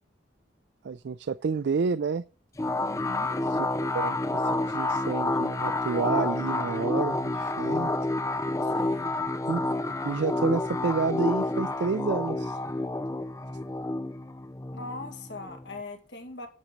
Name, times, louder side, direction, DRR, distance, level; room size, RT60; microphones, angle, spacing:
voice 1, 0.8-2.2 3.5-3.7 3.9-7.9 9.5-9.7 10.0-12.6, right 5 dB, 65° right, 0.4 m, -29 dB
sound 1, 2.6-15.8, left 2 dB, 15° left, 0.4 m, -29 dB
voice 2, 2.8-3.3 8.6-9.1 14.7-16.5, left 2 dB, 65° left, 2.0 m, -41 dB
11.0 x 4.1 x 7.4 m
head